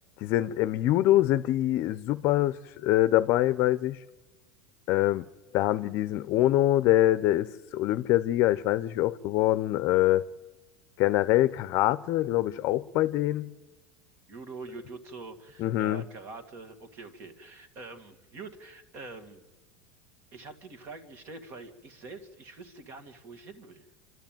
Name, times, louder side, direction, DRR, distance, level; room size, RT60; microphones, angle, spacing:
voice 1, 0.2-4.0 4.9-5.3 5.5-10.2 11.0-13.5 15.6-16.0, left 15 dB, 50° left, 0.6 m, -24 dB
voice 2, 14.3-19.4 20.3-23.9, right 3 dB, 40° right, 2.1 m, -45 dB
27.0 x 12.5 x 9.1 m
supercardioid pair, 140°, 5 cm